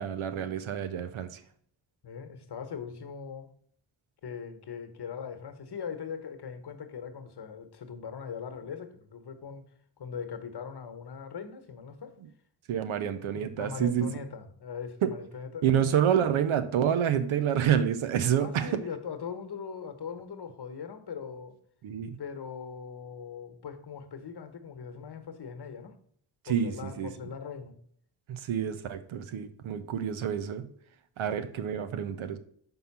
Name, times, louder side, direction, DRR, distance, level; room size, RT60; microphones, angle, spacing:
voice 1, 0.0-1.4 12.7-14.1 15.0-15.1 15.6-18.8 21.8-22.2 26.4-27.1 28.3-30.7 31.2-32.4, right 9 dB, 80° right, 10 dB, 0.8 m, -28 dB
voice 2, 2.0-3.5 4.2-9.7 10.0-12.1 13.3-15.6 18.4-21.6 22.2-25.9 26.5-27.8, left 6 dB, 55° left, 8 dB, 1.1 m, -40 dB
5.4 x 3.8 x 5.8 m, 0.63 s
cardioid pair, 50°, 48 cm